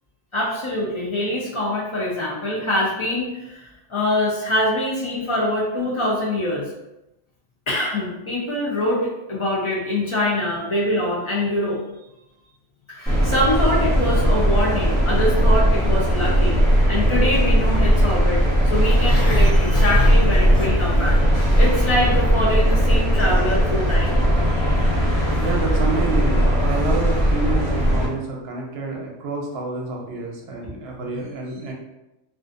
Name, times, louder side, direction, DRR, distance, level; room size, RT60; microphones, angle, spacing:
voice 1, 0.3-6.7 7.7-11.8 12.9-21.2 21.6-24.1, left 1 dB, 50° left, -4 dB, 0.3 m, -24 dB
sound 1, 13.1-28.1, equal, ahead, 0.9 m, -18 dB
Growling, 18.8-21.1 21.4-21.8 22.1-22.2, left 4 dB, 85° left, 1.1 m, -31 dB
voice 2, 25.4-31.7, right 4 dB, 65° right, 0 dB, 0.7 m, -28 dB
2.5 x 2.4 x 2.4 m, 0.93 s
omnidirectional pair, 1.2 m